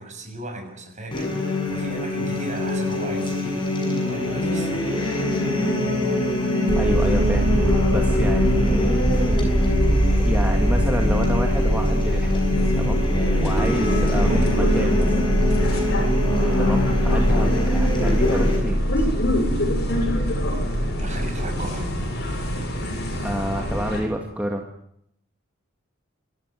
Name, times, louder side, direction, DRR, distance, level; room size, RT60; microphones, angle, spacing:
voice 1, 0.0-4.9 14.2-14.5 21.0-22.0, right 1 dB, 35° right, 4 dB, 6.9 m, -35 dB
sound 1, 1.1-18.6, left 1 dB, 25° left, 7.3 m, -24 dB
sound 2, 6.7-24.0, equal, 55° left, 7.2 m, -22 dB
voice 2, 6.8-9.0 9.4-9.8 10.2-12.5 12.8-13.2 13.4-15.3 16.6-19.1 23.2-24.7, equal, 5° right, 1 dB, 2.0 m, -29 dB
26.5 x 14.5 x 9.8 m, 0.73 s
head